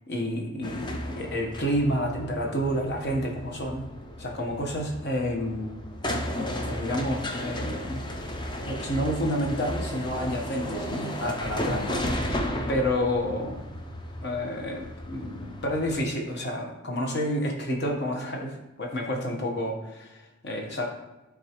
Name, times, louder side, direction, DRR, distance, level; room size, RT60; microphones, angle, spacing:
voice 1, 0.1-3.9 4.2-5.7 6.6-8.0 8.6-12.3 12.7-13.6 14.2-20.9, equal, 55° left, 1 dB, 1.1 m, -29 dB
sound 1, 0.6-16.0, left 1 dB, 20° left, 0.5 m, -34 dB
9.7 x 3.7 x 3.0 m, 1.0 s
head